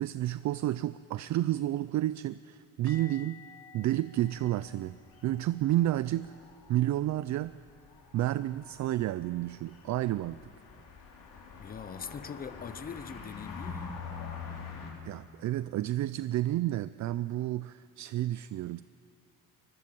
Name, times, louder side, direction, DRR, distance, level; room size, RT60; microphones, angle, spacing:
voice 1, 0.0-3.4 3.7-5.0 5.2-6.3 6.7-7.6 8.1-10.4 15.0-18.8, right 14 dB, 55° right, 15 dB, 0.5 m, -30 dB
sound 1, 2.9-8.6 8.9-9.2 9.5-9.7 12.9-13.0, left 6 dB, 10° left, 1.3 m, -56 dB
sound 2, 4.2-14.9, left 5 dB, 65° left, 4.3 m, -46 dB
voice 2, 11.6-14.0, left 7 dB, 25° left, 14 dB, 0.6 m, -42 dB
24.5 x 21.0 x 7.6 m, 2.5 s
cardioid pair, 160°, 36 cm